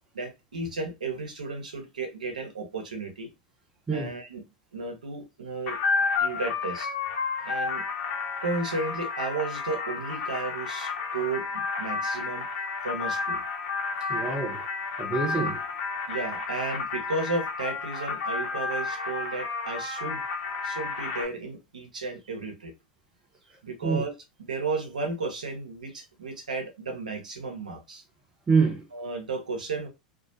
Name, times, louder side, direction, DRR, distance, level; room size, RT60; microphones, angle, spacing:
voice 1, 0.1-3.3 3.9-4.4 4.7-5.8 6.2-6.9 7.4-7.8 8.4-12.4 12.8-13.4 16.1-20.2 20.6-22.7 23.6-24.1 24.4-28.0 28.9-29.9, right 3 dB, 85° right, 0.8 m, -33 dB
sound 1, 5.7-21.2, left 4 dB, 55° left, 0.8 m, -31 dB
voice 2, 14.1-14.6 15.0-15.6 23.8-24.0 28.5-28.8, right 4 dB, 20° right, 0.8 m, -25 dB
2.4 x 2.0 x 2.6 m
hypercardioid pair, 90°, 4 cm